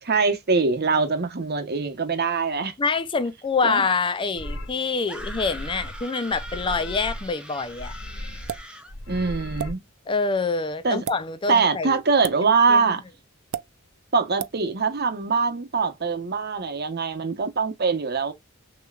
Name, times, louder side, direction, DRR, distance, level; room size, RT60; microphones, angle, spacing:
voice 1, 0.0-2.7 3.6-3.8 9.1-9.8 10.8-11.0 11.5-13.0 14.1-18.3, right 4 dB, 50° right, 1.0 m, -23 dB
voice 2, 2.8-7.9 10.1-12.0 12.4-12.9, left 4 dB, 25° left, 0.5 m, -26 dB
sound 1, 4.4-4.7 5.2-6.0 6.3-7.3 7.6-8.6 8.9-9.7, left 1 dB, 70° left, 1.8 m, -36 dB
sound 2, 5.1-8.9, right 1 dB, 5° right, 0.9 m, -41 dB
sound 3, 8.5-8.7 9.6-9.7 10.9-11.2 12.2-12.4 13.5-13.7 14.4-14.6, right 9 dB, 80° right, 0.4 m, -31 dB
6.4 x 3.0 x 2.3 m
head